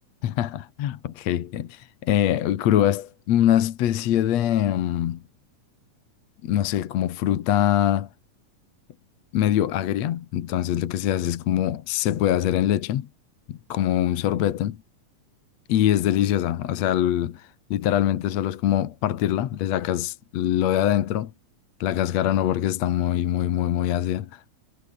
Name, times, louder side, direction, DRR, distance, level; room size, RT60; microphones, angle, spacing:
voice 1, 0.2-5.2 6.4-8.1 9.3-13.1 13.5-14.8 15.7-21.3 21.8-24.4, left 11 dB, 60° left, 2.2 m, -23 dB
omnidirectional pair, 3.8 m